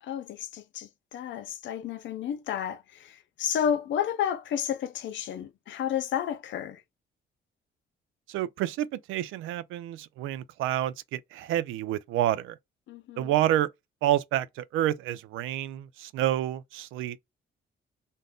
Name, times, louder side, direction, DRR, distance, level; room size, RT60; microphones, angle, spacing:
voice 1, 0.0-6.8 12.9-13.3, left 9 dB, 70° left, 0.5 m, -31 dB
voice 2, 8.3-12.6 13.2-13.7 14.0-17.2, right 13 dB, 90° right, 0.4 m, -29 dB
2.6 x 2.0 x 3.4 m
cardioid pair, 90°, 20 cm